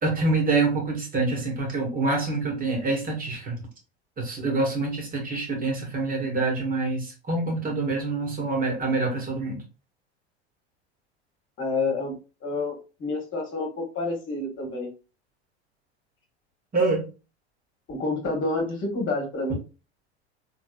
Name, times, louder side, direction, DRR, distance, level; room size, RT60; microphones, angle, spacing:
voice 1, 0.0-3.6 4.2-9.6 16.7-17.1, right 3 dB, 25° right, 0 dB, 1.7 m, -26 dB
voice 2, 11.6-12.1 12.4-12.7 13.0-13.7 13.9-14.9 17.9-19.6, left 3 dB, 35° left, 0 dB, 1.5 m, -28 dB
3.6 x 3.5 x 2.4 m, 0.33 s
hypercardioid pair, 80°, 34 cm